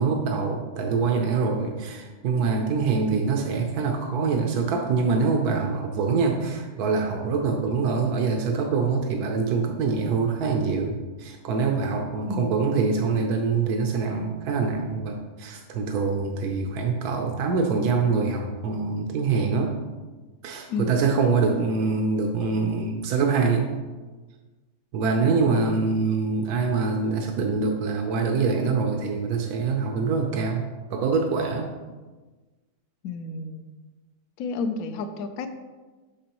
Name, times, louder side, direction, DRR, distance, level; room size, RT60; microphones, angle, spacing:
voice 1, 0.0-19.7 20.4-23.7 24.9-31.7, right 4 dB, 85° right, 2 dB, 1.2 m, -24 dB
voice 2, 12.3-12.6 20.7-20.9 25.5-25.8 33.0-33.7 34.4-35.5, left 4 dB, 70° left, 9 dB, 1.0 m, -31 dB
8.4 x 6.0 x 2.9 m, 1.3 s
omnidirectional pair, 1.6 m